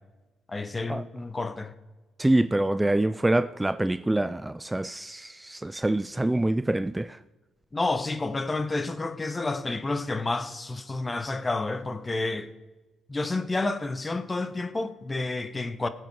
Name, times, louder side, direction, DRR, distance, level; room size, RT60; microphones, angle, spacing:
voice 1, 0.5-1.7 7.7-12.5 13.1-15.9, left 3 dB, 25° left, 0.9 m, -30 dB
voice 2, 2.2-7.2, right 1 dB, 10° right, 0.3 m, -25 dB
19.0 x 7.9 x 4.6 m
cardioid pair, 90°, 0 cm